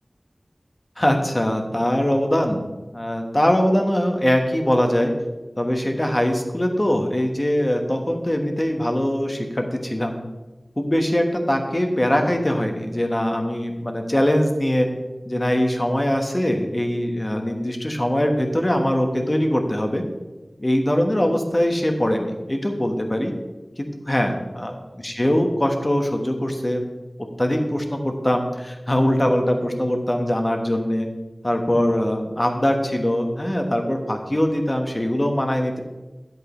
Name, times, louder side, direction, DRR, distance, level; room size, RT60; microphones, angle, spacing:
voice 1, 1.0-2.6 2.9-5.1 5.6-10.2 10.8-14.9 15.2-20.0 20.6-23.3 23.8-24.7 25.0-26.8 27.4-31.1 31.4-35.8, equal, 30° left, 4 dB, 1.2 m, -22 dB
10.5 x 8.4 x 3.1 m, 1.1 s
wide cardioid pair, 55°, 0 cm